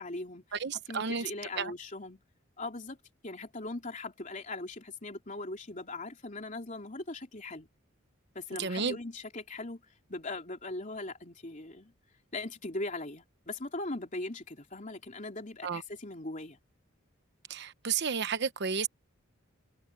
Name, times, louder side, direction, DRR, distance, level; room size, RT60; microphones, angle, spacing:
voice 1, 0.0-0.6 0.9-2.2 2.6-3.0 3.2-7.7 8.3-9.8 10.1-11.9 12.3-16.6, left 2 dB, 35° left, 3.4 m, -40 dB
voice 2, 0.5-1.2 1.6-1.7 8.6-9.0 15.6-15.8 17.5-18.9, right 6 dB, 55° right, 0.9 m, -32 dB
head